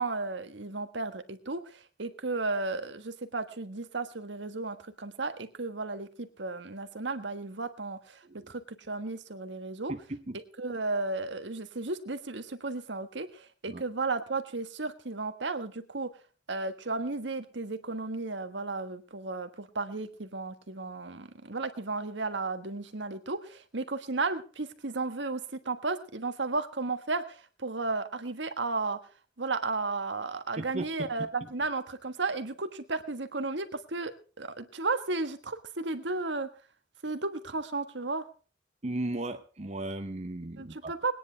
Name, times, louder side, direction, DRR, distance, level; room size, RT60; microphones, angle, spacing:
voice 1, 0.0-8.6 8.9-9.9 10.3-16.1 16.5-25.4 25.6-29.0 29.4-34.1 34.4-36.5 37.0-38.2 40.6-41.1, right 3 dB, 70° right, 9 dB, 1.5 m, -34 dB
voice 2, 9.9-10.4 13.7-13.8 30.6-31.3 38.8-40.9, right 2 dB, 40° right, 6 dB, 0.9 m, -36 dB
20.5 x 10.0 x 4.6 m, 0.38 s
head